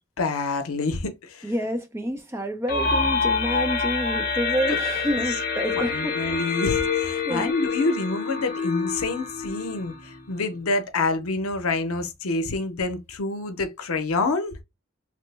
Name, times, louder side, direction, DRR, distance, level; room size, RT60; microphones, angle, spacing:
voice 1, 0.2-1.5 4.7-4.8 5.7-14.6, left 3 dB, 90° left, 0.6 m, -27 dB
voice 2, 1.4-6.1 7.3-7.5, equal, 10° right, 0.4 m, -28 dB
sound 1, 2.7-10.3, left 4 dB, 45° left, 0.6 m, -27 dB
3.0 x 2.0 x 3.2 m
head